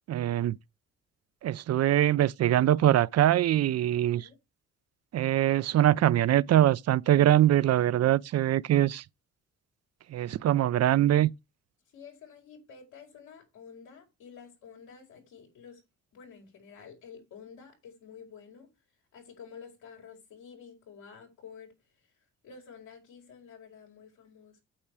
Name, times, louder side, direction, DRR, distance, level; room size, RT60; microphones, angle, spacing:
voice 1, 0.1-0.6 1.4-4.3 5.1-9.0 10.1-11.3, right 12 dB, 55° right, 0.5 m, -23 dB
voice 2, 11.9-15.8 16.1-18.7 19.1-21.7 22.4-24.6, left 6 dB, 85° left, 5.0 m, -50 dB
8.9 x 7.2 x 4.8 m
cardioid pair, 90°, 30 cm